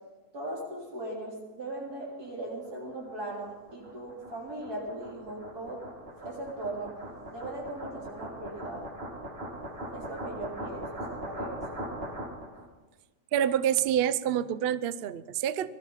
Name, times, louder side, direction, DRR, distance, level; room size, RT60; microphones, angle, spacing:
voice 1, 0.3-5.8 6.2-7.0 7.3-8.8 9.9-11.8, right 1 dB, 85° right, -3 dB, 4.2 m, -39 dB
sound 1, 2.7-12.6, right 1 dB, 40° right, 2.3 m, -41 dB
voice 2, 13.3-15.7, right 10 dB, 65° right, 15 dB, 0.6 m, -27 dB
20.0 x 13.0 x 5.7 m, 1.3 s
omnidirectional pair, 1.6 m